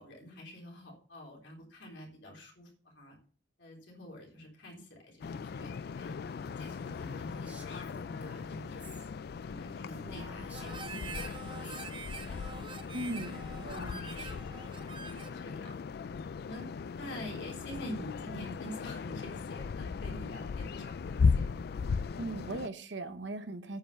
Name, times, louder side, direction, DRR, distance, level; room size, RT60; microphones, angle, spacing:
voice 1, 0.0-3.2 3.6-8.9 9.4-11.1 11.6-12.4 12.9-13.4 14.0-14.4 14.9-15.7 16.3-16.7 16.9-21.9, left 1 dB, 75° left, -1 dB, 3.6 m, -47 dB
sound 1, 5.2-22.7, left 5 dB, 55° left, 0.3 m, -37 dB
Female speech woman speaking, 6.6-9.1 9.4-9.5 9.9-11.9, right 1 dB, 10° right, 2.5 m, -52 dB
Harmonica, 10.5-15.4, right 5 dB, 25° right, 0.7 m, -46 dB
voice 2, 12.9-13.4 13.6-14.0 22.2-23.8, right 2 dB, 70° right, 10 dB, 1.0 m, -38 dB
9.1 x 5.6 x 6.7 m, 0.43 s
head